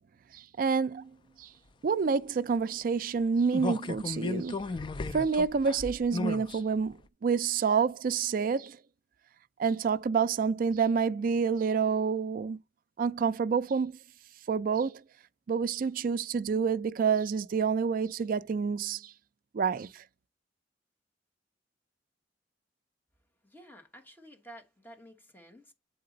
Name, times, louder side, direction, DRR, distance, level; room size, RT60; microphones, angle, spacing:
voice 1, 0.3-1.1 1.4-1.5 1.8-4.6 5.1-8.8 9.6-12.6 13.0-14.0 14.5-15.0 15.5-19.1 19.5-20.0, right 5 dB, 50° right, 0.4 m, -28 dB
sound 1, 3.5-6.6 7.0-7.1, left 3 dB, 25° left, 0.3 m, -35 dB
voice 2, 23.4-25.7, right 1 dB, 10° left, 1.0 m, -52 dB
7.6 x 4.0 x 3.8 m
head